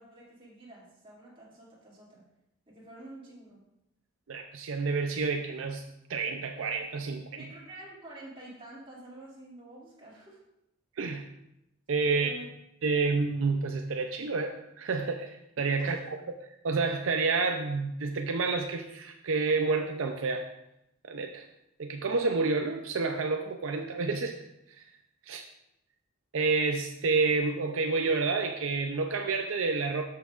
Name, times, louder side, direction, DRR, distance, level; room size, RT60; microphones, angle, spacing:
voice 1, 0.0-2.2 2.7-3.7 7.3-10.4 12.1-12.5 15.8-16.1, right 1 dB, 25° right, -6 dB, 2.5 m, -48 dB
voice 2, 4.3-5.8 6.1-7.2 11.0-11.2 11.9-12.3 12.8-16.0 16.4-20.5 21.0-21.4 21.8-24.4 24.7-24.8 25.3-25.4 26.3-30.1, right 4 dB, 65° right, 5 dB, 0.5 m, -29 dB
13.0 x 5.8 x 2.4 m, 0.84 s
head